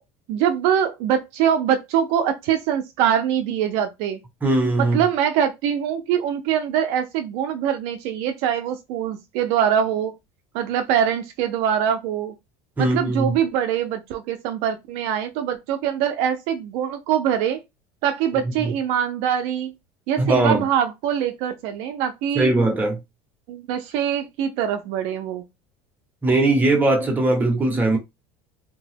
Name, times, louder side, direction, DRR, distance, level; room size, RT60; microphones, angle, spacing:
voice 1, 0.3-4.2 4.8-10.1 10.5-12.3 12.8-17.6 18.0-19.7 20.1-22.5 23.5-25.4, right 9 dB, 65° right, 0.5 m, -23 dB
voice 2, 4.4-5.0 12.8-13.3 18.6-18.7 20.2-20.6 22.3-23.0 26.2-28.0, right 2 dB, 15° right, 1.1 m, -20 dB
2.8 x 2.2 x 3.3 m
cardioid pair, 145°, 12 cm